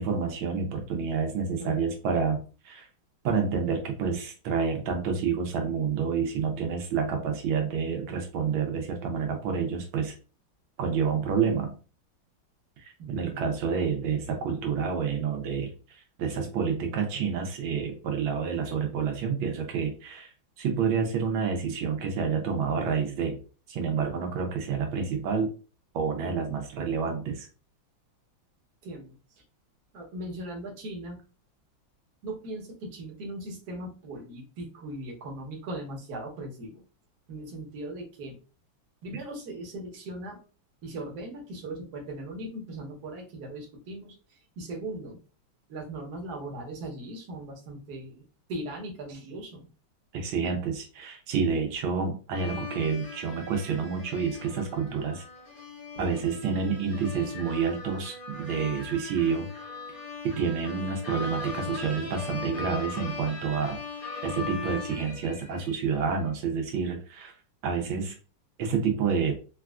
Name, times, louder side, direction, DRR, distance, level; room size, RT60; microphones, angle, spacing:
voice 1, 0.0-2.9 3.2-10.1 10.8-11.7 12.8-15.7 16.2-20.3 20.6-23.4 23.7-25.5 25.9-27.5 50.1-55.2 56.0-59.5 60.2-63.8 64.2-67.3 67.6-68.2 68.6-69.3, right 6 dB, 85° right, 3 dB, 1.5 m, -29 dB
voice 2, 28.8-29.2 29.9-31.2 32.2-36.8 37.3-38.4 39.0-40.4 40.8-45.2 45.7-48.2 48.5-49.7, right 1 dB, 55° right, 0 dB, 1.3 m, -39 dB
sound 1, 52.3-66.0, left 4 dB, 35° left, 1.1 m, -39 dB
4.1 x 2.3 x 2.3 m, 0.36 s
omnidirectional pair, 2.2 m